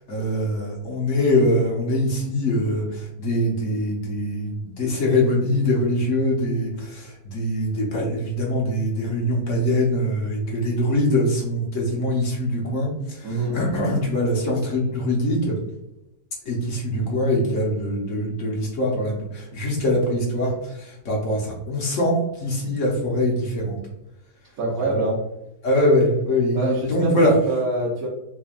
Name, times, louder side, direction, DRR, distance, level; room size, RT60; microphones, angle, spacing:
voice 1, 0.1-15.6 16.4-23.8 24.9-25.0 25.6-27.3, left 1 dB, 50° left, -3 dB, 1.2 m, -23 dB
voice 2, 13.2-13.6 24.6-25.2 26.5-28.1, right 2 dB, 65° right, -6 dB, 1.3 m, -25 dB
3.9 x 3.3 x 2.4 m, 0.89 s
omnidirectional pair, 1.8 m